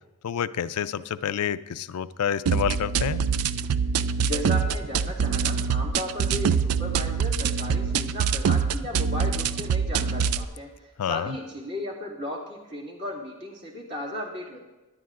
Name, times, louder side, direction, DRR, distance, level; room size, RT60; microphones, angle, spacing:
voice 1, 0.2-3.2 11.0-11.3, left 8 dB, 85° left, 14 dB, 0.4 m, -28 dB
sound 1, 2.5-10.5, right 6 dB, 80° right, 0.4 m, -25 dB
voice 2, 4.2-14.6, left 1 dB, 50° right, -4 dB, 2.4 m, -35 dB
23.0 x 10.0 x 2.5 m, 1.1 s
head